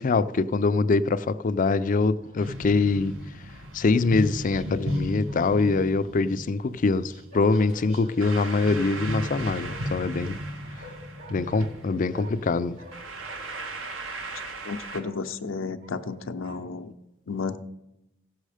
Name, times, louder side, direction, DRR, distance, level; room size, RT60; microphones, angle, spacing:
voice 1, 0.0-3.1 3.7-10.4 11.3-12.8, left 3 dB, 40° left, 0.4 m, -24 dB
Bark, 1.8-2.4 4.9-6.0 7.3-8.2 8.9-10.0 10.7-12.5 12.7-15.2 15.8-16.8, equal, 60° right, 4.8 m, -48 dB
sound 1, 2.4-15.0, right 1 dB, 80° right, 1.5 m, -36 dB
voice 2, 14.6-16.9 17.3-17.6, left 4 dB, 85° left, 0.6 m, -32 dB
16.0 x 6.4 x 5.0 m
head